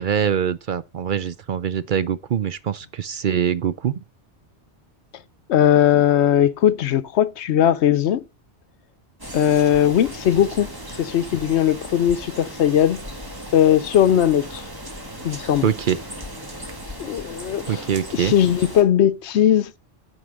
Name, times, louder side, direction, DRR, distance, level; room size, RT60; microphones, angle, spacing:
voice 1, 0.0-4.0 15.6-16.0 17.7-18.3, right 8 dB, 55° right, 0.7 m, -23 dB
voice 2, 5.5-8.2 9.3-13.0 13.5-14.6 15.2-15.7 17.0-17.8 18.1-19.8, left 10 dB, 75° left, 0.9 m, -19 dB
sound 1, 9.2-18.8, equal, 20° right, 1.9 m, -36 dB
9.3 x 4.6 x 6.3 m
omnidirectional pair, 1.1 m